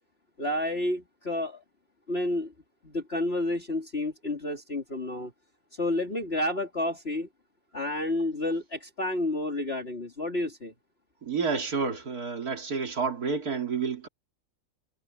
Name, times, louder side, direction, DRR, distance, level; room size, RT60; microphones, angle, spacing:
voice 1, 0.4-1.6 2.1-2.5 2.8-5.3 5.7-7.3 7.7-10.7, left 1 dB, 35° left, 3.1 m, -30 dB
voice 2, 11.2-14.1, right 5 dB, 60° right, 3.4 m, -29 dB
omnidirectional pair, 1.8 m